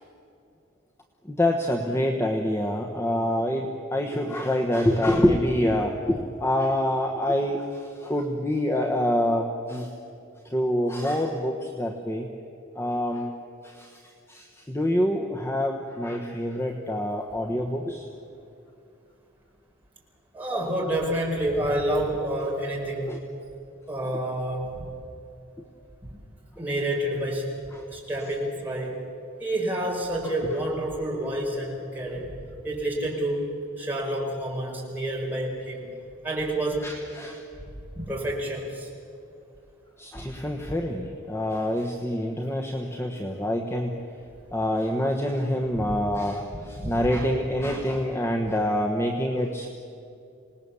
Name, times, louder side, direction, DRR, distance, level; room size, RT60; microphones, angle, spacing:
voice 1, 1.3-9.9 10.4-12.3 12.7-13.3 13.6-14.0 14.3-18.1 20.5-20.7 23.1-23.2 36.8-37.4 40.0-44.0 44.5-49.7, left 1 dB, 10° left, 2 dB, 1.1 m, -26 dB
voice 2, 20.3-23.2 23.9-24.9 26.0-26.1 26.6-27.5 27.9-29.1 29.4-32.4 32.6-35.9 36.2-36.9 37.9-38.9 40.2-40.3 45.8-46.0 46.5-47.1 47.6-47.7, right 1 dB, 10° right, -4 dB, 4.6 m, -29 dB
26.5 x 19.5 x 7.0 m, 2.7 s
head